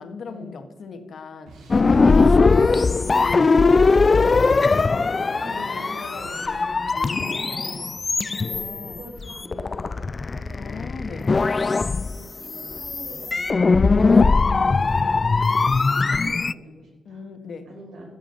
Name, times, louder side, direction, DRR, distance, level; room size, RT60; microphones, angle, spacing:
voice 1, 0.0-7.4 8.3-9.1 10.5-11.3 17.0-17.7, left 4 dB, 60° left, 7 dB, 1.5 m, -37 dB
Drum kit, 1.5-6.6, right 3 dB, 90° right, 2.3 m, -46 dB
sound 1, 1.7-16.5, left 4 dB, 35° left, 0.3 m, -20 dB
voice 2, 1.8-2.6 5.2-6.4 7.1-7.8 8.4-13.7 14.2-17.2 17.6-18.0, right 1 dB, 70° right, -2 dB, 5.1 m, -43 dB
16.0 x 7.4 x 6.7 m, 1.2 s
cardioid pair, 105°, 0 cm